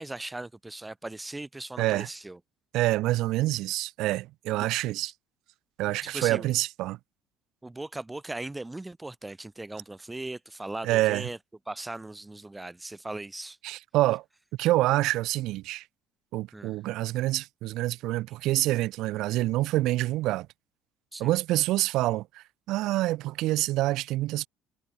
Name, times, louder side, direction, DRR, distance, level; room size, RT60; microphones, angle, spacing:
voice 1, 0.0-2.4 4.5-4.7 6.0-6.6 7.6-11.4 11.7-13.6 16.5-16.8 21.1-21.3, right 2 dB, 10° right, 1.1 m, -38 dB
voice 2, 2.7-5.1 5.8-7.0 10.8-11.3 13.6-14.2 14.6-15.8 16.3-20.5 21.2-24.5, right 17 dB, 70° right, 1.8 m, -27 dB
supercardioid pair, 105°, 0 cm